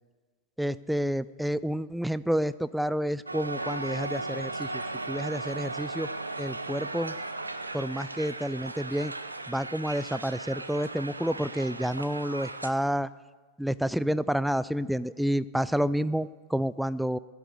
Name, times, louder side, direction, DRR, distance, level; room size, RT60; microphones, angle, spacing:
voice 1, 0.6-4.8 5.1-6.1 6.4-7.2 7.7-9.1 9.5-13.1 13.6-17.2, equal, ahead, 16 dB, 0.3 m, -29 dB
Crowd, 3.3-12.7, right 2 dB, 80° right, 0.8 m, -36 dB
16.5 x 11.0 x 6.8 m, 1.4 s
figure-of-eight pair, 90°, 0 cm